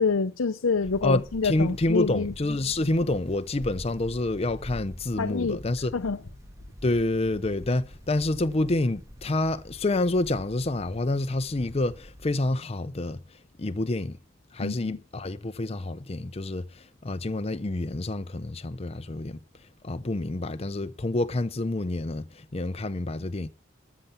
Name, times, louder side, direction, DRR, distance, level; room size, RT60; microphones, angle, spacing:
voice 1, 0.0-2.3 5.2-5.6 5.9-6.2 14.6-15.0, left 4 dB, 90° left, 0.6 m, -26 dB
sound 1, 0.8-12.5, equal, 15° right, 1.7 m, -46 dB
voice 2, 1.0-5.9 6.8-14.2 14.5-19.4 19.8-23.5, left 2 dB, 30° left, 0.6 m, -28 dB
13.5 x 7.1 x 7.1 m
head